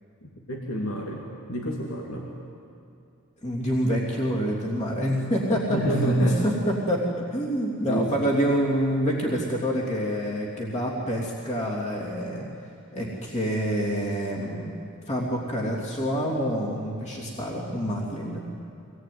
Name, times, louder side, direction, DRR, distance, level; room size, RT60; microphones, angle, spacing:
voice 1, 0.2-2.3 5.6-6.4 7.9-8.1, right 1 dB, 70° left, -1 dB, 2.7 m, -28 dB
voice 2, 3.4-12.5 12.9-14.8 15.1-18.4, equal, 30° left, -3 dB, 3.1 m, -27 dB
24.5 x 19.5 x 9.6 m, 2.6 s
head